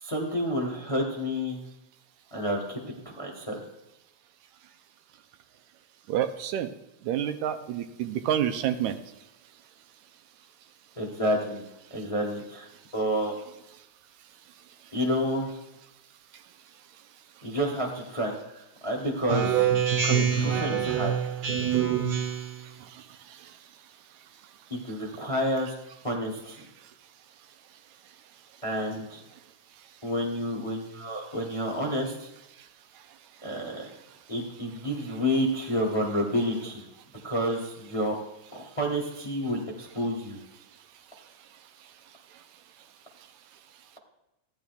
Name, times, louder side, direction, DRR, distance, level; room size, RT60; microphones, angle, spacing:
voice 1, 0.0-1.6 2.3-2.8 3.2-3.6 11.0-11.6 11.9-12.7 12.9-13.3 14.9-15.5 17.4-19.7 20.0-21.1 24.7-25.7 26.0-26.6 28.6-29.2 30.0-32.3 33.4-33.9 34.3-36.8 37.2-38.1 38.5-40.4, equal, 20° left, 0 dB, 0.8 m, -29 dB
voice 2, 6.1-6.7 7.1-8.9, right 10 dB, 80° right, 9 dB, 2.0 m, -28 dB
Speech synthesizer, 19.3-22.6, right 8 dB, 60° right, 1.0 m, -25 dB
15.0 x 10.5 x 2.5 m, 0.92 s
omnidirectional pair, 3.4 m